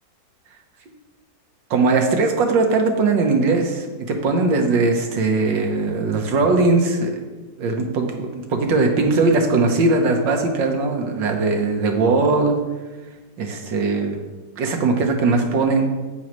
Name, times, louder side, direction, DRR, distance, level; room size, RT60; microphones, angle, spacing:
voice 1, 1.7-7.2 7.6-12.6 13.4-14.3 14.6-15.9, right 3 dB, 75° right, 4 dB, 1.8 m, -20 dB
10.5 x 8.5 x 3.2 m, 1.2 s
omnidirectional pair, 2.0 m